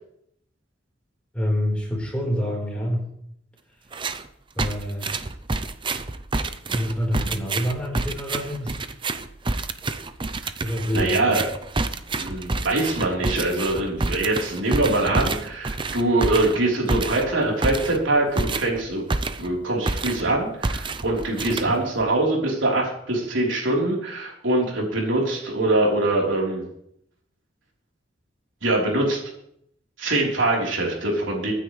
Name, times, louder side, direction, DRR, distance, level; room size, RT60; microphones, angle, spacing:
voice 1, 1.3-3.1 4.5-5.1 6.7-8.8 10.6-11.4 21.6-21.7, equal, 5° left, -3 dB, 4.4 m, -27 dB
sound 1, 3.9-4.3 4.6-19.6 19.9-20.3 20.6-22.0, right 3 dB, 25° right, 0.6 m, -28 dB
voice 2, 10.9-11.4 12.2-19.0 19.4-26.6 28.6-29.2 30.0-31.5, right 2 dB, 85° right, -2 dB, 4.0 m, -23 dB
23.5 x 9.7 x 3.3 m, 0.72 s
head